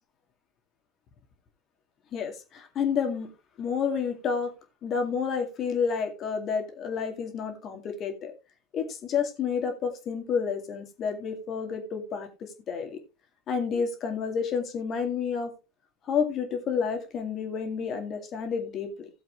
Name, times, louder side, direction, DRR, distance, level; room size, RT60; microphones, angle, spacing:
voice 1, 2.1-3.3 3.6-4.5 4.8-8.3 8.7-13.0 13.5-15.5 16.1-19.1, left 6 dB, 35° left, 5 dB, 2.1 m, -30 dB
16.5 x 7.5 x 2.5 m, 0.28 s
figure-of-eight pair, 80°, 0 cm